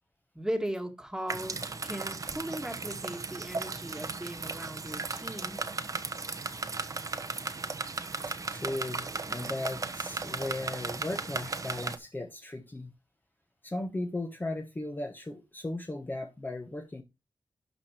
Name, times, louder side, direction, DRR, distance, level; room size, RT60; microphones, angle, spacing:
voice 1, 0.3-5.7, right 1 dB, 5° right, 1.9 m, -37 dB
sound 1, 1.3-12.0, right 4 dB, 40° right, 1.1 m, -36 dB
voice 2, 8.3-12.9 13.6-17.0, left 2 dB, 20° left, 1.3 m, -37 dB
12.0 x 5.0 x 4.5 m
wide cardioid pair, 115°, 9 cm